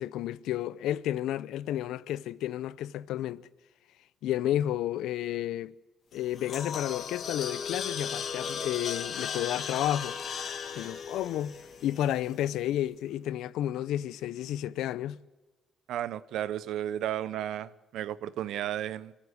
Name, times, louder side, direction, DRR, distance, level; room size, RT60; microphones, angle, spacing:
voice 1, 0.0-3.5 4.2-5.7 6.1-10.2 10.8-11.5 11.8-15.2, left 12 dB, 85° left, 0.6 m, -31 dB
sound 1, 6.1-12.4, left 7 dB, 60° left, 2.4 m, -36 dB
voice 2, 15.9-19.1, right 11 dB, 80° right, 0.8 m, -33 dB
25.0 x 14.5 x 9.5 m
cardioid pair, 90°, 0 cm